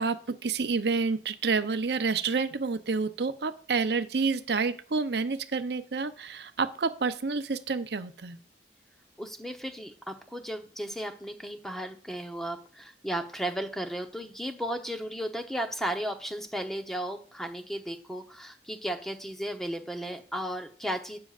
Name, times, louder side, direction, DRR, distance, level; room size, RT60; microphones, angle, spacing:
voice 1, 0.0-8.4, right 4 dB, 70° right, 11 dB, 0.7 m, -29 dB
voice 2, 9.2-21.2, equal, ahead, 5 dB, 0.9 m, -35 dB
12.5 x 8.6 x 2.5 m, 0.42 s
head